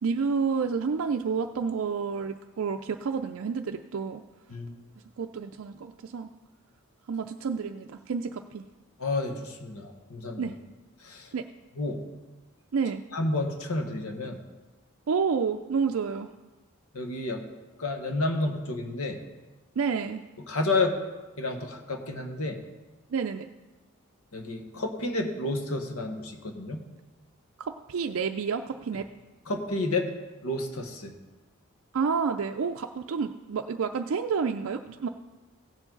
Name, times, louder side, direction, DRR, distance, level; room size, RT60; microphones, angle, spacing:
voice 1, 0.0-4.2 5.2-6.3 7.1-8.7 10.4-10.5 11.3-11.4 12.7-13.0 15.1-16.3 19.8-20.2 23.1-23.5 27.6-29.1 31.9-35.1, right 5 dB, 65° right, 5 dB, 0.4 m, -29 dB
voice 2, 9.0-10.4 11.0-11.3 11.8-12.0 13.1-14.4 16.9-17.4 17.8-19.2 20.5-21.0 21.4-22.6 24.3-26.8 29.5-30.1 30.4-31.1, left 2 dB, 80° left, 4 dB, 1.4 m, -30 dB
16.5 x 7.3 x 3.9 m, 1.2 s
head